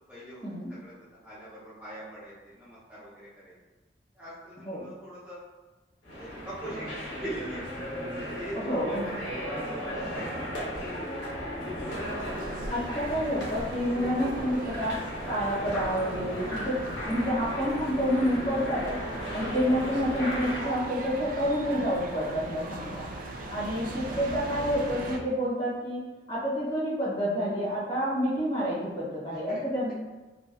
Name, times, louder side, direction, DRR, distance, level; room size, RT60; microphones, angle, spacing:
voice 1, 0.1-0.4 0.8-0.9 1.2-3.5 4.1-5.4 6.1-7.7 8.2-9.2 9.5-9.9 10.1-10.8 19.4-19.5 22.8-23.0 29.3-29.6, right 1 dB, 10° right, -12 dB, 0.6 m, -43 dB
sound 1, 6.0-20.7, equal, 75° left, 0.8 m, -36 dB
voice 2, 8.5-9.1 12.7-15.0 15.3-16.8 17.0-19.0 19.3-23.1 23.5-26.0 26.3-29.9, equal, 30° left, -9 dB, 1.1 m, -29 dB
sound 2, 11.8-25.2, right 2 dB, 50° right, 0.3 m, -39 dB
2.8 x 2.1 x 2.2 m, 1.2 s
head